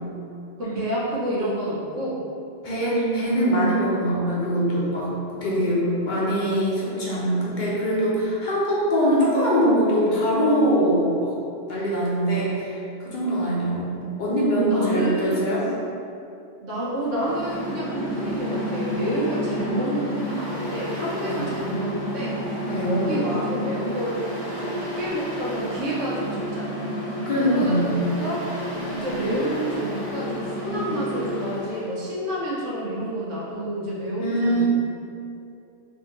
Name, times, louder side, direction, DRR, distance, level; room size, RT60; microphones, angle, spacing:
voice 1, 0.6-2.2 5.4-6.4 11.9-12.2 13.2-13.7 14.5-15.4 16.6-22.6 22.8-24.2 24.6-26.8 27.5-28.7 28.9-34.7, right 1 dB, 85° right, -7 dB, 1.2 m, -29 dB
voice 2, 2.6-11.4 11.7-15.7 21.2-21.4 22.7-22.9 27.3-28.1 34.2-34.7, equal, 50° left, -6 dB, 0.7 m, -23 dB
Mechanical fan, 17.0-31.9, equal, 45° right, 1.0 m, -31 dB
3.4 x 2.6 x 2.9 m, 2.6 s
omnidirectional pair, 1.2 m